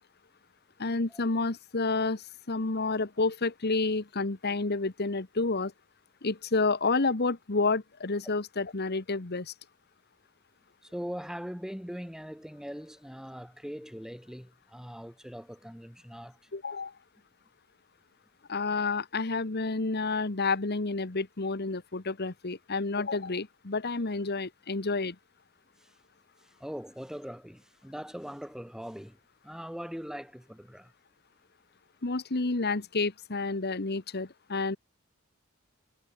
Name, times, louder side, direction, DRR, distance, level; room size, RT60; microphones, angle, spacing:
voice 1, 0.8-5.7 6.2-9.5 16.5-16.9 18.5-25.2 32.0-34.8, left 3 dB, 45° left, 1.2 m, -30 dB
voice 2, 10.8-16.5 25.8-25.9 26.4-29.2 29.4-30.9, equal, ahead, 2.1 m, -41 dB
head